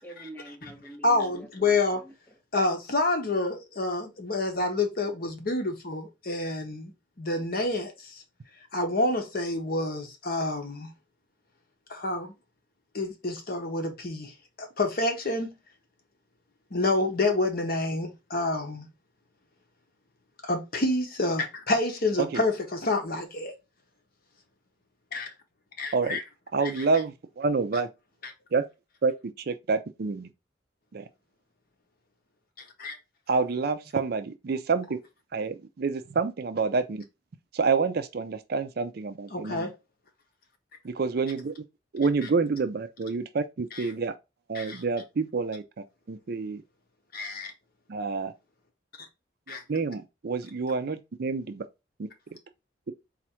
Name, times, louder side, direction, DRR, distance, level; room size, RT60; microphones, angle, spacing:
voice 1, 0.0-2.4, right 1 dB, 10° left, 1.3 m, -46 dB
voice 2, 1.0-2.0 2.5-6.9 7.2-8.2 8.7-10.9 11.9-12.3 12.9-14.3 14.6-15.5 16.7-18.9 20.4-23.5 25.1-25.3 25.8-26.2 26.8-26.9 32.8-32.9 39.3-39.7 43.7-43.8 44.5-44.8 47.1-47.5 49.5-49.6, left 2 dB, 50° left, 0.9 m, -28 dB
voice 3, 26.5-27.9 28.5-28.7 29.0-29.1 29.5-30.3 30.9-31.0 33.3-35.0 35.3-37.0 37.5-39.7 40.8-41.5 41.9-44.1 44.5-45.6 46.1-46.6 47.9-48.3 49.5-51.7 52.0-52.1, right 4 dB, 55° right, 0.4 m, -28 dB
4.2 x 2.5 x 4.3 m
head